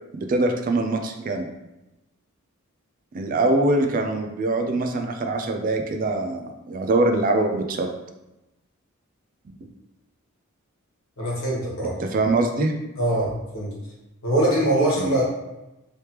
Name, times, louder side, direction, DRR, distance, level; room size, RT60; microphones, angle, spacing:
voice 1, 0.2-1.5 3.1-7.9 12.0-12.7 15.0-15.2, right 2 dB, 40° right, 4 dB, 0.4 m, -23 dB
voice 2, 11.2-12.0 13.0-13.7 14.2-15.2, right 1 dB, 70° left, -4 dB, 1.3 m, -23 dB
3.3 x 3.2 x 2.9 m, 0.97 s
head